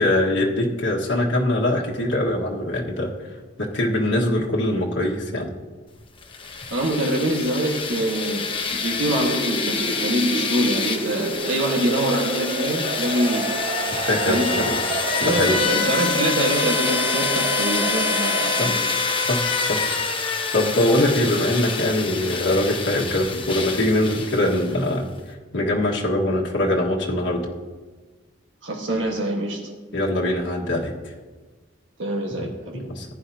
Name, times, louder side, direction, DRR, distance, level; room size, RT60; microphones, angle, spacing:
voice 1, 0.0-3.1 3.6-5.5 14.1-14.8 15.2-15.6 18.6-18.7 19.2-19.8 20.5-25.1 25.5-27.5 29.9-30.9 32.7-33.0, left 1 dB, 70° left, -2 dB, 1.6 m, -22 dB
sound 1, 6.2-24.9, left 4 dB, 30° left, 1.0 m, -26 dB
voice 2, 6.7-13.5 14.2-14.7 15.2-18.8 28.6-29.7 32.0-32.8, right 1 dB, 90° right, 0 dB, 1.5 m, -25 dB
sound 2, 9.2-18.7, right 3 dB, 40° right, 0.6 m, -30 dB
15.0 x 10.5 x 2.8 m, 1.4 s
head